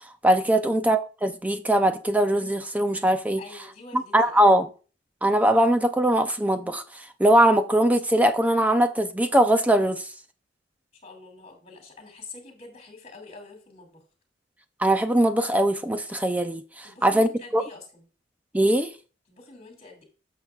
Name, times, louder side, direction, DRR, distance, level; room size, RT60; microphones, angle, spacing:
voice 1, 0.2-3.4 3.9-4.7 5.2-6.8 7.2-10.1 14.8-17.6 18.5-18.9, right 1 dB, 10° right, 0.5 m, -21 dB
voice 2, 3.4-4.6 11.0-14.0 16.8-18.0 19.3-20.0, left 3 dB, 35° left, 2.4 m, -46 dB
10.5 x 6.6 x 2.4 m
head